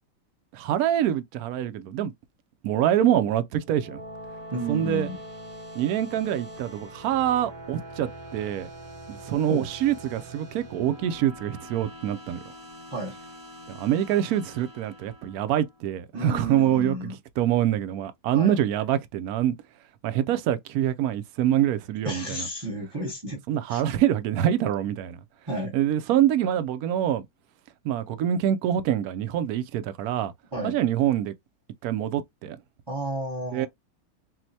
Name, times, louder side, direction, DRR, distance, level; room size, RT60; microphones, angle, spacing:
voice 1, 0.5-2.1 2.6-4.0 4.7-5.1 5.8-8.7 9.1-12.4 13.7-19.5 20.0-22.5 23.5-25.2 25.7-27.2 27.8-30.3 30.6-31.3 31.8-32.6 33.5-33.7, right 11 dB, 75° right, 0.8 m, -25 dB
sound 1, 3.6-15.9, right 1 dB, 45° right, 1.7 m, -43 dB
voice 2, 4.5-5.2 9.5-9.7 12.9-13.2 16.1-17.1 18.3-18.5 22.0-23.4 23.7-23.8 25.5-25.7 30.5-30.8 32.9-33.7, right 1 dB, 20° right, 0.7 m, -32 dB
6.2 x 2.1 x 2.7 m
omnidirectional pair, 2.1 m